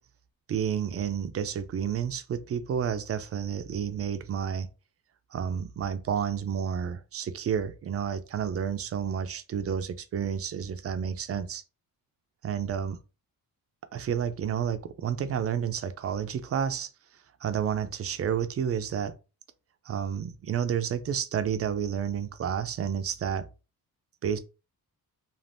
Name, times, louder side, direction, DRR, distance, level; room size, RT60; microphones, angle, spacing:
voice 1, 0.5-4.7 5.3-11.6 12.4-13.0 13.9-16.9 17.4-19.1 19.9-23.4 24.2-24.4, right 8 dB, 40° right, 0.4 m, -30 dB
2.6 x 2.4 x 3.3 m
cardioid pair, 110°, 37 cm